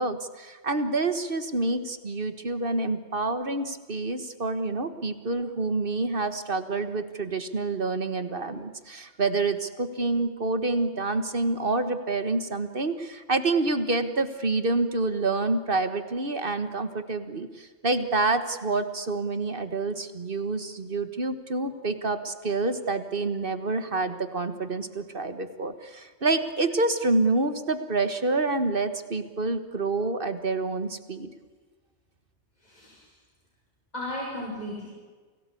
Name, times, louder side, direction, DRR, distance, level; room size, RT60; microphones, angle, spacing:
voice 1, 0.0-31.3, right 3 dB, 50° right, 10 dB, 1.7 m, -27 dB
voice 2, 32.6-33.1 33.9-34.9, left 1 dB, 35° left, -4 dB, 6.4 m, -35 dB
29.0 x 18.5 x 8.5 m, 1.4 s
omnidirectional pair, 1.2 m